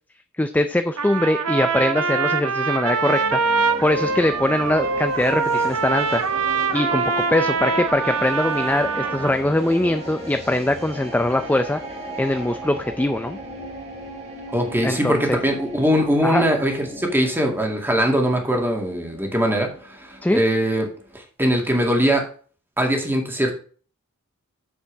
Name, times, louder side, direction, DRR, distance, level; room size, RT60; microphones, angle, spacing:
voice 1, 0.4-3.4 3.8-6.2 6.7-11.8 12.2-13.4 14.8-15.4 16.2-16.5 20.2-20.4, left 1 dB, 10° left, 8 dB, 0.4 m, -22 dB
Trumpet, 1.0-9.4, right 5 dB, 85° right, 0.9 m, -24 dB
sound 1, 3.0-21.2, right 1 dB, 30° right, 2.6 m, -37 dB
voice 2, 14.5-19.7 20.0-20.9 21.1-22.2 22.8-23.5, equal, 10° right, 2 dB, 2.1 m, -21 dB
8.4 x 7.3 x 3.4 m, 0.41 s
head